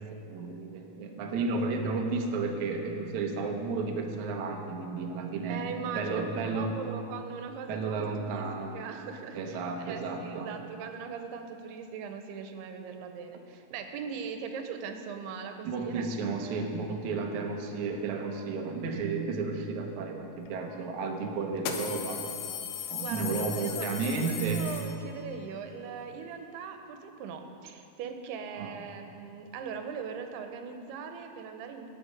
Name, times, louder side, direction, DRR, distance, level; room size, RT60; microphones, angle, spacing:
voice 1, 0.3-5.6 6.0-6.7 7.7-8.8 9.3-10.5 15.6-22.3 22.9-24.7 28.6-28.7, right 4 dB, 70° right, 2 dB, 1.9 m, -32 dB
voice 2, 5.5-16.1 22.8-31.9, right 6 dB, 85° right, 6 dB, 2.8 m, -40 dB
sound 1, 20.5-20.6 21.5-25.3, left 9 dB, 75° left, 2.5 m, -37 dB
17.5 x 6.6 x 5.1 m, 2.7 s
omnidirectional pair, 4.5 m